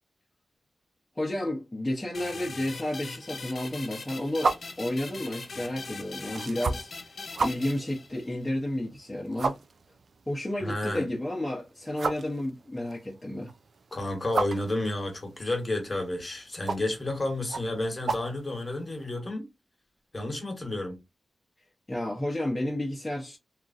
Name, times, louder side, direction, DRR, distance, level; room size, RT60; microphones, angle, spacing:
voice 1, 1.2-6.9 7.4-9.6 10.3-13.5 21.9-23.4, left 1 dB, 10° left, 0.7 m, -31 dB
sound 1, 2.1-8.5, left 4 dB, 60° left, 0.6 m, -41 dB
sound 2, 4.3-19.0, right 4 dB, 65° right, 0.3 m, -36 dB
voice 2, 10.6-11.1 13.9-19.5 20.1-21.0, left 1 dB, 30° left, 1.1 m, -31 dB
2.9 x 2.4 x 2.5 m
wide cardioid pair, 90°, 0 cm